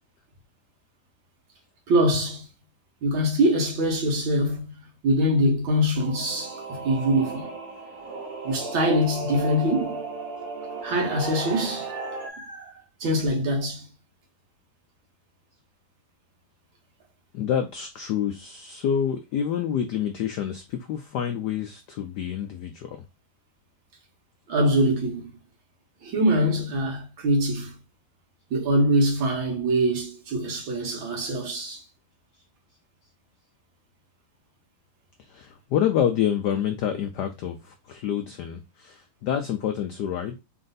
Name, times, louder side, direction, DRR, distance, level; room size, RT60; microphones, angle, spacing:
voice 1, 1.9-2.5 3.0-4.7 5.0-7.5 8.4-10.0 10.8-12.7 13.0-13.9 24.5-25.3 26.0-27.7 28.5-31.8, equal, 65° right, 2.0 m, -24 dB
Singing / Musical instrument, 5.9-12.3, right 3 dB, 85° right, 2.1 m, -35 dB
voice 2, 17.3-23.0 35.3-40.4, left 9 dB, 80° left, 0.9 m, -28 dB
4.3 x 2.6 x 3.9 m
omnidirectional pair, 2.3 m